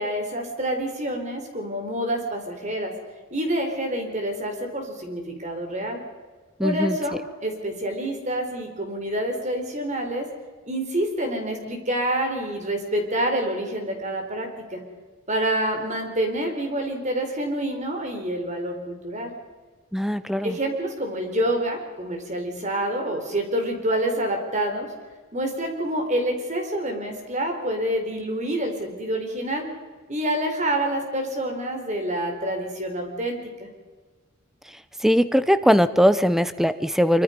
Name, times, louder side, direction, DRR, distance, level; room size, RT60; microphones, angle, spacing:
voice 1, 0.0-2.9 3.3-6.0 6.6-10.3 10.7-14.8 15.3-19.3 20.4-24.9 25.3-29.6 30.1-33.7, right 1 dB, 35° right, 4 dB, 4.3 m, -27 dB
voice 2, 6.6-7.0 19.9-20.6 35.0-37.2, equal, ahead, 13 dB, 0.8 m, -20 dB
25.0 x 24.5 x 5.3 m, 1.4 s
head